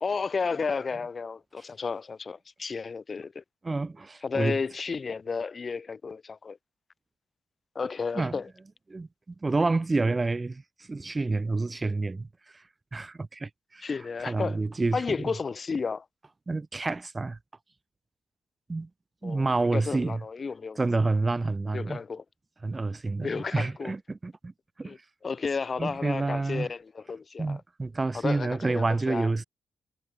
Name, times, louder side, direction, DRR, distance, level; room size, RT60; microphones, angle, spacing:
voice 1, 0.0-3.4 4.2-6.6 7.7-8.5 13.8-14.6 14.9-16.0 19.2-19.5 19.7-20.8 21.7-22.2 23.2-23.9 24.8-25.0 25.2-27.6 28.1-29.3, left 5 dB, 35° left, 0.8 m, -32 dB
voice 2, 3.6-4.6 8.1-8.4 8.9-9.1 9.4-12.3 12.5-12.6 12.9-13.9 14.2-15.3 16.5-17.4 18.7-18.9 19.2-20.2 20.8-22.0 22.6-24.5 24.8-24.9 25.8-26.7 27.4-29.4, right 3 dB, 25° right, 0.7 m, -28 dB
cardioid pair, 95°, 0 cm